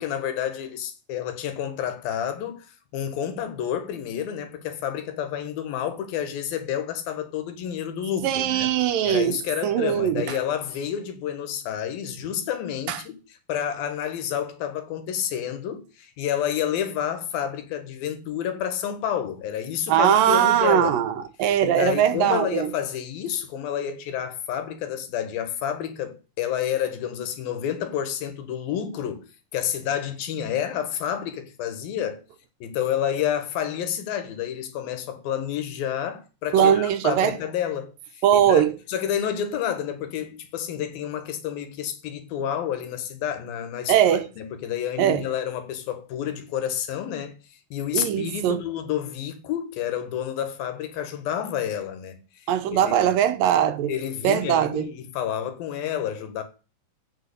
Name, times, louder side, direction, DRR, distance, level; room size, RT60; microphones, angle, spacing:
voice 1, 0.0-2.7 2.9-8.7 9.0-13.2 13.5-20.9 21.6-29.2 29.5-32.2 32.6-38.6 38.9-47.4 47.7-53.1 53.9-56.4, left 9 dB, 75° left, 3.2 m, -29 dB
voice 2, 8.2-9.4 9.6-10.4 12.9-13.0 19.9-21.1 21.4-22.7 36.5-37.4 38.2-38.7 43.9-44.3 45.0-45.2 47.9-48.6 52.5-53.9 54.2-54.9, right 10 dB, 75° right, 2.5 m, -20 dB
8.0 x 6.9 x 8.2 m
omnidirectional pair, 4.3 m